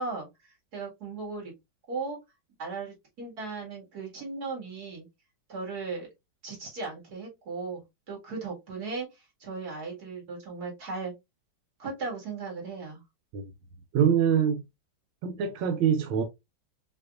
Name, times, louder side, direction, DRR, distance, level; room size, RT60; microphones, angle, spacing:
voice 1, 0.0-1.5 1.9-2.2 2.6-5.1 5.5-6.1 6.4-7.8 8.1-11.1 11.8-13.0, right 4 dB, 50° right, 2.5 m, -37 dB
voice 2, 13.9-14.6 15.2-16.2, right 8 dB, 85° right, 1.4 m, -24 dB
5.6 x 3.0 x 2.4 m
omnidirectional pair, 2.1 m